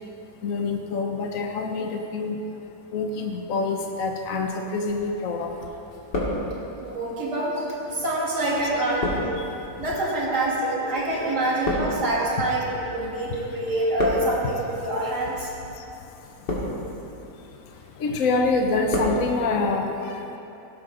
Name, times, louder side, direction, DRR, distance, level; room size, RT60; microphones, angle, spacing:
voice 1, 0.4-2.4 2.9-5.5 10.8-11.3 18.0-20.2, left 3 dB, 55° left, 3 dB, 1.1 m, -26 dB
sound 1, 5.0-5.6 5.8-6.9 7.6-13.2 13.5-14.5 15.2-15.5 16.2-17.0 17.4-17.9 18.3-19.2 19.5-19.6, left 1 dB, 85° left, 2.8 m, -31 dB
voice 2, 6.8-9.4 9.8-15.5, right 1 dB, 65° right, -6 dB, 3.5 m, -26 dB
17.5 x 12.0 x 3.9 m, 2.9 s
omnidirectional pair, 1.9 m